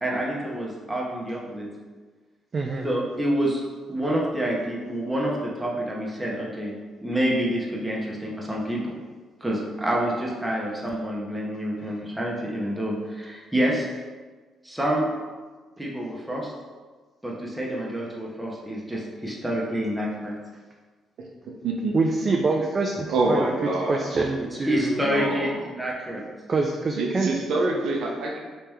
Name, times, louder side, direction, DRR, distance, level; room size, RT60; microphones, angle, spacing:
voice 1, 0.0-1.7 2.8-3.6 3.9-6.7 7.0-8.9 9.4-13.9 14.6-15.1 15.8-16.5 17.2-20.3 24.7-26.2, right 1 dB, 10° right, -4 dB, 0.8 m, -27 dB
voice 2, 2.5-2.9 21.9-25.0 26.5-27.3, right 3 dB, 35° right, 1 dB, 0.3 m, -25 dB
voice 3, 21.5-21.9 23.1-24.1 25.0-25.6 27.0-28.4, right 2 dB, 75° right, -1 dB, 0.6 m, -26 dB
3.2 x 2.9 x 3.5 m, 1.4 s
cardioid pair, 90°, 0 cm